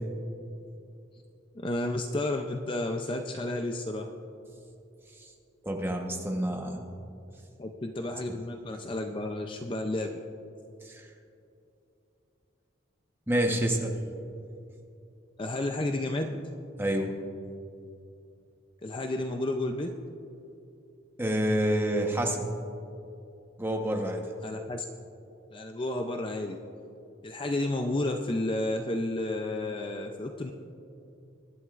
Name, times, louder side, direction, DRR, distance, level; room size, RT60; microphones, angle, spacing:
voice 1, 1.5-4.1 7.6-10.2 15.4-16.4 18.8-19.9 24.4-24.8 25.5-26.6 27.2-30.5, left 1 dB, 25° left, 4 dB, 0.5 m, -31 dB
voice 2, 5.6-6.8 10.8-11.1 13.3-13.9 16.8-17.1 21.2-22.4 23.6-24.2, right 1 dB, 10° right, 1 dB, 1.1 m, -28 dB
23.0 x 11.0 x 2.5 m, 2.7 s
head